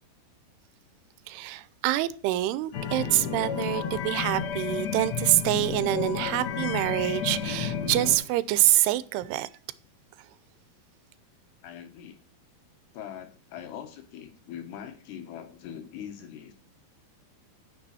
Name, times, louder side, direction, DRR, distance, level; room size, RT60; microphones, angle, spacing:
voice 1, 1.3-9.5, right 16 dB, 90° right, 2.7 m, -26 dB
sound 1, 2.7-8.2, left 7 dB, 65° left, 1.7 m, -31 dB
voice 2, 11.6-12.2 12.9-16.5, left 9 dB, 90° left, 3.4 m, -42 dB
9.4 x 6.2 x 4.1 m
omnidirectional pair, 4.6 m